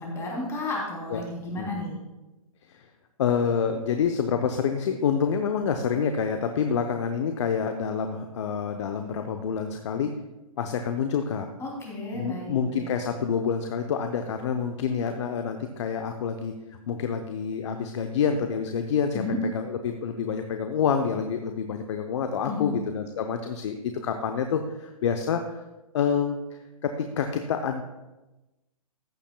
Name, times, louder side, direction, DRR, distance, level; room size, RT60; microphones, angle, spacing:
voice 1, 0.0-2.0 11.6-12.8 19.1-19.4 22.4-22.7, left 2 dB, 15° left, -2 dB, 3.1 m, -33 dB
voice 2, 3.2-10.1 10.6-11.5 12.1-16.5 16.9-25.6 25.9-27.8, left 6 dB, 50° left, 6 dB, 0.8 m, -27 dB
14.5 x 10.0 x 2.3 m, 1.1 s
hypercardioid pair, 130°, 19 cm